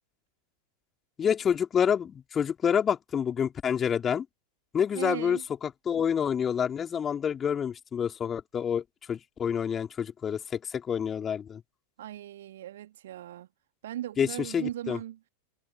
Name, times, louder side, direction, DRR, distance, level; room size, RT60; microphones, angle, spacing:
voice 1, 1.2-4.3 4.7-11.6 14.2-15.0, left 8 dB, 20° left, 3.8 m, -28 dB
voice 2, 4.9-5.4 12.0-13.5 13.8-15.2, right 12 dB, 60° right, 2.8 m, -38 dB
figure-of-eight pair, 90°, 0 cm